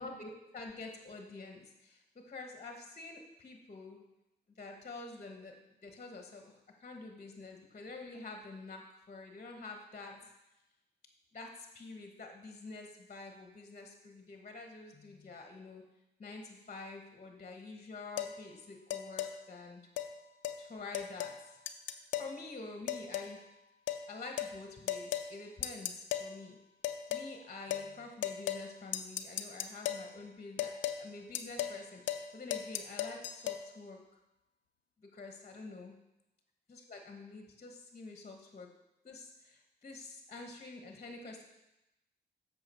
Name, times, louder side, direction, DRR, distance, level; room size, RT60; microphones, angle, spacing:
voice 1, 0.0-4.0 4.6-5.5 5.8-6.5 6.8-10.3 11.3-15.8 16.2-19.8 20.6-21.6 22.2-23.5 24.1-26.6 27.1-34.0 35.0-36.0 36.7-38.7 39.0-41.4, left 3 dB, 40° left, 3 dB, 1.2 m, -48 dB
sound 1, 18.2-18.3 18.9-19.3 20.0-20.1 20.4-20.6 20.9-21.4 21.7-22.3 22.9-23.3 23.9-24.0 24.4-24.5 24.9-25.3 25.6-26.3 26.8-27.3 27.7-27.9 28.2-28.7 28.9-30.1 30.6-31.0 31.3-31.8 32.1-32.3 32.5-33.6, left 11 dB, 85° left, 0.5 m, -36 dB
7.8 x 6.2 x 4.4 m, 0.92 s
cardioid pair, 65°, 19 cm